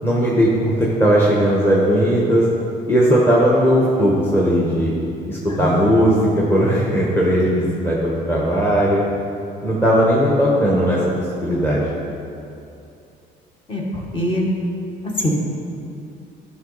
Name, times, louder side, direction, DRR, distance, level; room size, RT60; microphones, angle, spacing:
voice 1, 0.0-2.4 2.9-4.9 5.3-9.0 9.6-11.9, equal, 15° left, -5 dB, 1.2 m, -17 dB
voice 2, 5.6-5.9 13.7-14.4 15.0-15.4, left 1 dB, 30° left, -2 dB, 1.5 m, -23 dB
11.5 x 5.3 x 4.0 m, 2.6 s
cardioid pair, 110°, 17 cm